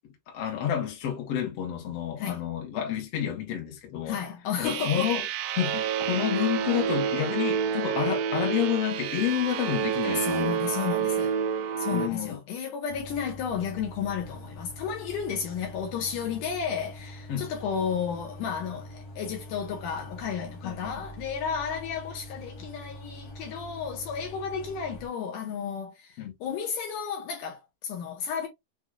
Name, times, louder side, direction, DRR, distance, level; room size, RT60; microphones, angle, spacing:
voice 1, 0.3-4.2 4.6-5.2 5.6-10.6 11.9-12.4 17.3-17.5 20.6-21.0 26.2-26.3, left 10 dB, 55° left, 1.8 m, -29 dB
voice 2, 4.1-5.2 10.1-11.4 11.8-28.5, left 7 dB, 70° left, 2.3 m, -33 dB
sound 1, 4.6-12.1, right 8 dB, 90° right, 2.5 m, -29 dB
sound 2, 12.9-25.1, equal, 90° left, 0.8 m, -44 dB
6.2 x 2.6 x 2.3 m
omnidirectional pair, 4.2 m